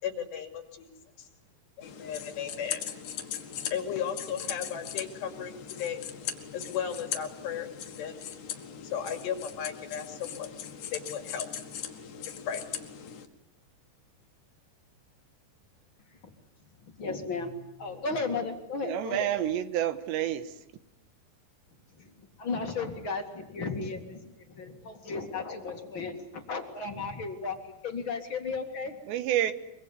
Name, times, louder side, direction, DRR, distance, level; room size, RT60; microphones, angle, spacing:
voice 1, 0.0-0.9 1.2-1.3 1.8-2.9 3.7-5.5 5.8-6.0 6.5-7.7 8.0-8.1 8.8-10.5 10.9-11.5 12.5-12.6, left 8 dB, 80° left, 7 dB, 4.6 m, -35 dB
sound 1, 1.8-13.3, left 9 dB, 55° left, 2.8 m, -39 dB
voice 2, 17.0-19.3 22.0-22.1 22.4-29.0, left 4 dB, 40° left, 5 dB, 2.2 m, -35 dB
voice 3, 18.8-20.5 29.1-29.5, right 11 dB, 90° right, 12 dB, 3.6 m, -28 dB
23.5 x 23.5 x 9.7 m, 0.80 s
omnidirectional pair, 4.9 m